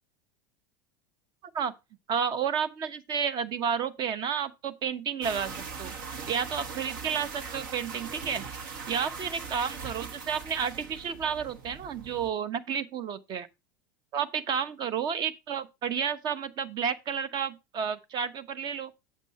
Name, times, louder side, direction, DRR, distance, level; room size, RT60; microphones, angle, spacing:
voice 1, 2.1-5.9 6.3-8.4 8.8-13.5 14.1-18.9, right 7 dB, 40° right, 1.0 m, -31 dB
sound 1, 5.2-12.3, right 5 dB, 70° right, 1.6 m, -40 dB
8.1 x 7.6 x 4.2 m
hypercardioid pair, 85°, 11 cm